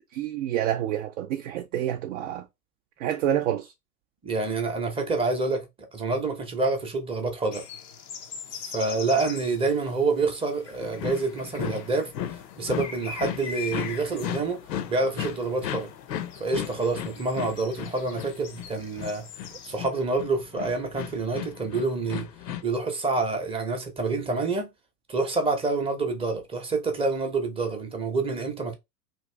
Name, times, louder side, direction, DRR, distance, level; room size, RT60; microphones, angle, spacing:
voice 1, 0.1-2.4 3.0-3.7, right 11 dB, 50° right, 0.5 m, -28 dB
voice 2, 4.2-7.6 8.5-12.1 12.6-15.9 16.4-19.3 19.6-22.3 22.6-24.7 25.1-28.7, right 3 dB, 10° right, 0.7 m, -27 dB
sound 1, 7.5-19.8, left 7 dB, 25° left, 0.3 m, -43 dB
sound 2, 10.8-22.6, left 10 dB, 75° left, 0.7 m, -35 dB
2.9 x 2.5 x 3.2 m
hypercardioid pair, 100°, 50 cm